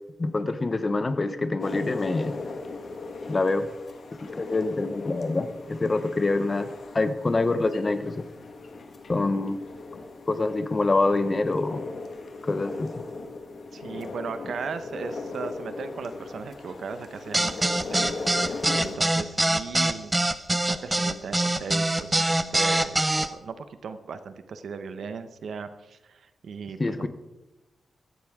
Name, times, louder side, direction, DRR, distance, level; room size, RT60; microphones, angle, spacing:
voice 1, 0.2-2.4 3.3-3.7 4.2-6.7 6.9-8.3 9.1-9.6 10.3-11.8 12.4-12.9 26.8-27.1, left 3 dB, 25° left, 10 dB, 0.8 m, -25 dB
sound 1, 1.6-19.0, left 3 dB, 50° left, 1.7 m, -38 dB
voice 2, 13.7-20.2 20.5-27.1, right 5 dB, 65° right, 10 dB, 0.9 m, -37 dB
sound 2, 17.3-23.3, right 1 dB, 10° right, 0.6 m, -23 dB
16.5 x 13.0 x 3.7 m, 1.1 s
wide cardioid pair, 165°, 0 cm